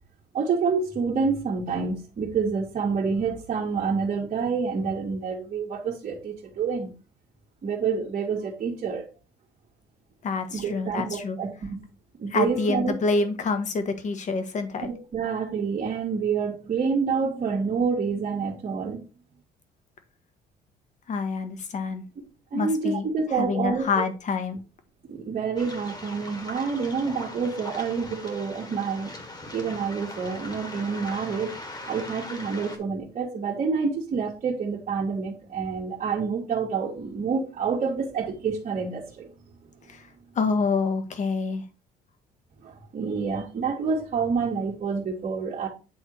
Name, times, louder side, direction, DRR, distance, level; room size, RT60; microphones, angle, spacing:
voice 1, 0.3-6.9 7.6-9.1 10.5-11.8 12.2-13.2 14.9-19.1 22.5-24.0 25.0-29.1 29.5-31.5 31.9-39.3 42.6-45.7, right 5 dB, 45° right, -5 dB, 2.0 m, -28 dB
voice 2, 10.2-11.4 12.3-14.9 21.1-22.0 22.5-24.6 39.9-40.1 40.3-41.6, left 4 dB, 45° left, 8 dB, 1.6 m, -27 dB
Waves surf, 25.6-32.8, left 2 dB, 25° left, 1.9 m, -40 dB
8.7 x 3.6 x 4.7 m, 0.31 s
cardioid pair, 110°, 17 cm